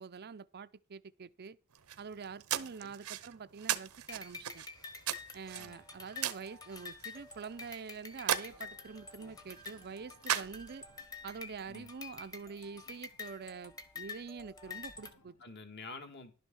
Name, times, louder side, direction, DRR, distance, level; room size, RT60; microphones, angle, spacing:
voice 1, 0.0-1.6 2.0-4.7 5.3-10.8 11.2-15.3, right 5 dB, 45° right, 0.5 m, -46 dB
sound 1, 1.7-11.0, right 10 dB, 80° right, 0.9 m, -39 dB
voice 2, 2.5-2.9 5.6-5.8 11.7-11.9 15.4-16.3, left 3 dB, 50° left, 2.0 m, -49 dB
sound 2, 4.1-15.1, left 5 dB, 15° left, 1.3 m, -48 dB
sound 3, 8.5-15.4, left 1 dB, 85° left, 2.6 m, -67 dB
11.5 x 6.4 x 6.2 m
head